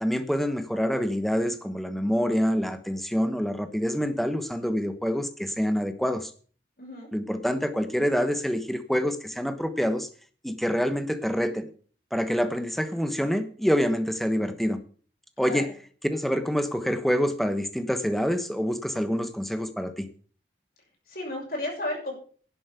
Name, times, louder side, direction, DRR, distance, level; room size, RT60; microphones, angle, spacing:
voice 1, 0.0-6.3 7.1-10.1 10.4-11.7 12.1-14.8 15.4-15.7 16.1-20.1, equal, ahead, 9 dB, 1.1 m, -26 dB
voice 2, 6.8-7.1 15.4-15.6 21.1-22.1, left 1 dB, 55° left, -1 dB, 6.3 m, -33 dB
11.0 x 7.4 x 8.2 m, 0.44 s
head